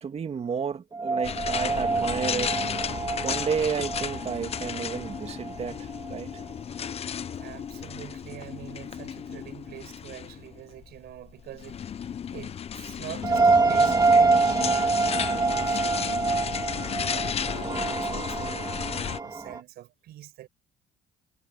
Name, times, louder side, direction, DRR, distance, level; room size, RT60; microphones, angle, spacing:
voice 1, 0.0-2.6 3.2-6.3, right 6 dB, 40° right, 2.6 m, -31 dB
sound 1, 0.9-6.5 6.9-7.0 13.2-19.6, right 3 dB, 20° right, 3.0 m, -26 dB
sound 2, 1.2-19.2, left 8 dB, 35° left, 0.7 m, -34 dB
voice 2, 7.4-20.5, right 14 dB, 75° right, 5.9 m, -45 dB
cardioid pair, 110°, 17 cm